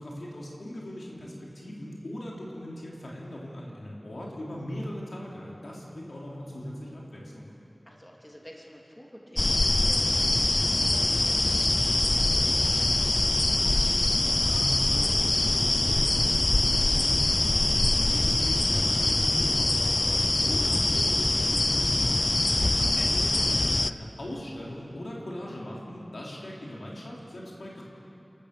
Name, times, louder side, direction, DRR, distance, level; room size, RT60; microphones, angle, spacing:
voice 1, 0.0-7.5 14.3-17.6 18.0-22.3 22.8-27.8, left 1 dB, 80° left, -4 dB, 3.7 m, -39 dB
voice 2, 7.8-10.3 10.6-13.9 17.5-18.0, equal, 10° left, -2 dB, 3.0 m, -49 dB
sound 1, 9.4-23.9, left 2 dB, 55° left, 0.4 m, -24 dB
28.0 x 13.5 x 6.9 m, 3.0 s
wide cardioid pair, 50°, 0 cm